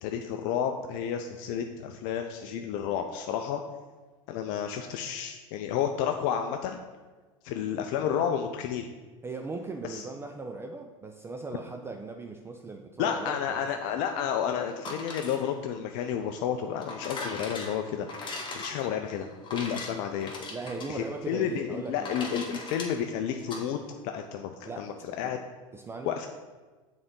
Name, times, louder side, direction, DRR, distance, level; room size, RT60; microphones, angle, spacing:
voice 1, 0.0-3.6 4.3-6.8 7.4-8.9 9.8-10.1 13.0-18.1 18.5-20.3 20.9-25.4 26.1-26.3, left 8 dB, 55° left, 5 dB, 0.5 m, -31 dB
voice 2, 9.2-13.4 20.5-22.6 24.7-25.4 25.7-26.1, right 3 dB, 15° right, 4 dB, 0.4 m, -39 dB
sound 1, 14.7-23.6, left 3 dB, 30° left, 1.3 m, -40 dB
6.8 x 4.0 x 3.7 m, 1.3 s
hypercardioid pair, 95°, 17 cm